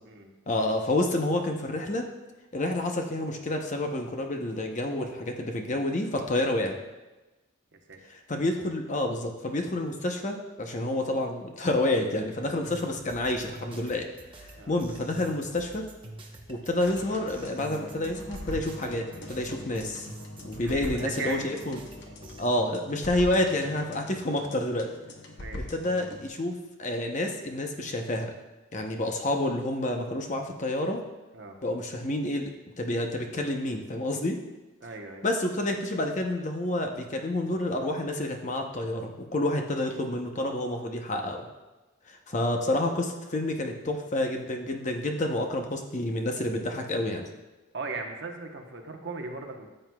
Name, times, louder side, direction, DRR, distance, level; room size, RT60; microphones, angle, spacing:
voice 1, 0.5-2.0 2.5-6.8 8.3-14.1 14.4-15.8 16.5-20.1 20.4-21.8 22.4-24.9 25.5-28.3 28.7-31.0 31.6-32.5 32.8-34.4 35.2-41.4 42.1-47.2, left 1 dB, 35° left, 3 dB, 0.8 m, -29 dB
sound 1, 12.6-22.5, right 1 dB, 25° right, 0.9 m, -47 dB
sound 2, 16.9-26.3, left 1 dB, 55° left, 1.0 m, -42 dB
voice 2, 20.6-21.5 25.4-25.7 31.3-31.6 34.8-35.3 47.7-49.7, right 3 dB, 55° right, 2 dB, 1.0 m, -37 dB
13.5 x 7.8 x 2.3 m, 1.1 s
head